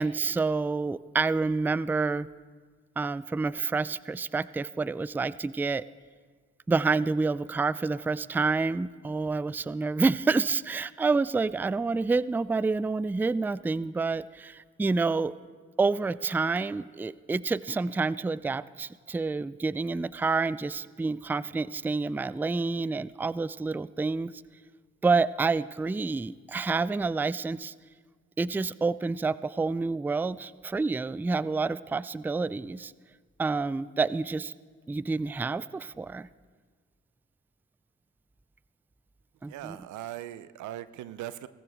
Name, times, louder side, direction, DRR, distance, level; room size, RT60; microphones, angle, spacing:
voice 1, 0.0-2.3 3.0-5.8 6.7-15.4 15.8-24.3 25.0-27.7 28.4-32.9 33.4-34.5 34.9-36.3 39.4-39.8, right 4 dB, 5° right, 18 dB, 0.3 m, -28 dB
voice 2, 39.4-41.5, right 13 dB, 90° right, 15 dB, 0.6 m, -39 dB
18.0 x 15.0 x 3.4 m, 1.5 s
supercardioid pair, 55°, 29 cm